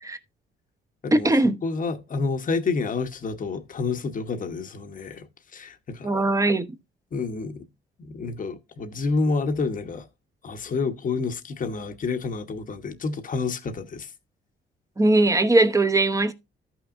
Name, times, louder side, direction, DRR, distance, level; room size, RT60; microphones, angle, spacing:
voice 1, 1.1-1.6 6.0-6.6 15.0-16.3, right 2 dB, 15° right, 0.9 m, -20 dB
voice 2, 1.6-5.3 5.5-6.1 7.1-7.7 8.0-10.1 10.4-14.1, left 4 dB, 40° left, 1.1 m, -29 dB
13.5 x 5.9 x 2.5 m
cardioid pair, 90°, 20 cm